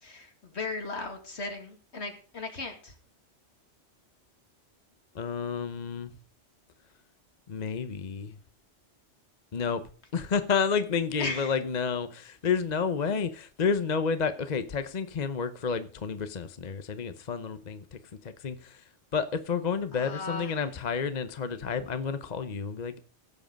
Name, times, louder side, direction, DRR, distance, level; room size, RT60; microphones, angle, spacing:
voice 1, 0.0-3.0 11.2-11.6 19.9-20.7, left 3 dB, 65° left, 2.5 m, -37 dB
voice 2, 5.1-6.1 7.5-8.4 9.5-9.8 10.1-17.8 18.2-18.8 19.1-23.0, left 6 dB, 40° left, 0.9 m, -30 dB
16.0 x 7.6 x 5.2 m
omnidirectional pair, 1.2 m